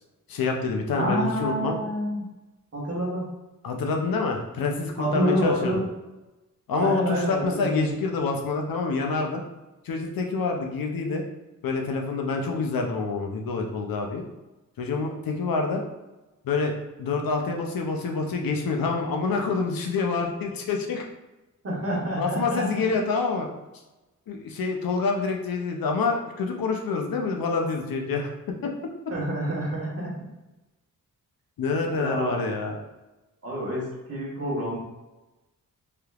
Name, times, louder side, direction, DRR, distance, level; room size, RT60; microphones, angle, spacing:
voice 1, 0.3-1.8 3.6-5.8 6.7-9.4 9.8-11.2 11.6-14.2 14.8-15.8 16.4-21.0 22.2-23.5 24.3-28.3 31.6-32.8, left 4 dB, 80° left, 2 dB, 0.5 m, -27 dB
voice 2, 1.0-2.2 2.7-3.3 5.0-5.9 6.7-7.9 21.6-22.8 29.1-30.1 32.0-32.4 33.4-34.8, right 1 dB, 45° right, -5 dB, 1.1 m, -28 dB
3.3 x 2.9 x 2.3 m, 1.1 s
wide cardioid pair, 85°, 35 cm